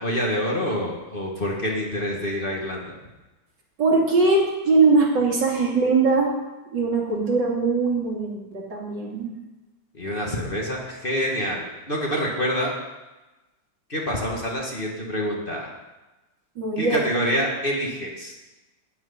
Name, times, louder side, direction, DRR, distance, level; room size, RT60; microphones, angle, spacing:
voice 1, 0.0-2.9 9.9-12.7 13.9-15.7 16.8-18.3, equal, 30° left, -2 dB, 2.0 m, -27 dB
voice 2, 3.8-6.4 6.7-9.4 16.5-17.0, right 3 dB, 65° right, -3 dB, 3.3 m, -21 dB
12.5 x 6.4 x 9.7 m, 1.1 s
omnidirectional pair, 2.1 m